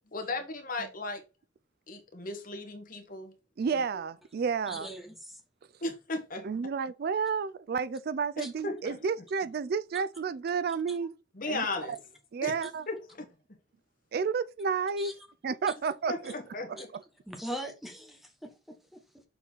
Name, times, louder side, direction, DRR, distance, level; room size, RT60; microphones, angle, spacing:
voice 1, 0.1-1.2 1.9-3.3 5.8-6.5 8.4-9.0 11.3-12.0 12.4-12.5 12.9-13.0 16.1-16.9, left 2 dB, 45° left, 1.3 m, -36 dB
voice 2, 3.6-4.9 6.4-11.1 11.5-12.0 12.3-12.9 14.1-15.1 15.4-16.3, right 5 dB, 55° right, 0.3 m, -31 dB
voice 3, 4.7-5.4 8.4-8.5 10.9-11.0 15.0-15.1 17.3-19.2, equal, ahead, 1.2 m, -41 dB
6.7 x 4.0 x 4.4 m
head